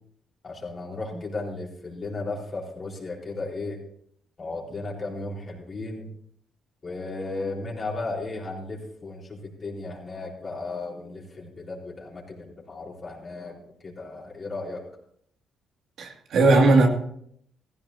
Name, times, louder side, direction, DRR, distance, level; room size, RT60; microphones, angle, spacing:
voice 1, 0.4-3.8 4.4-6.1 6.8-13.6 13.8-14.8, left 3 dB, 35° left, 4.1 m, -35 dB
voice 2, 16.0-16.9, right 2 dB, 70° right, 2.3 m, -18 dB
16.0 x 15.0 x 2.8 m
cardioid pair, 90°, 0 cm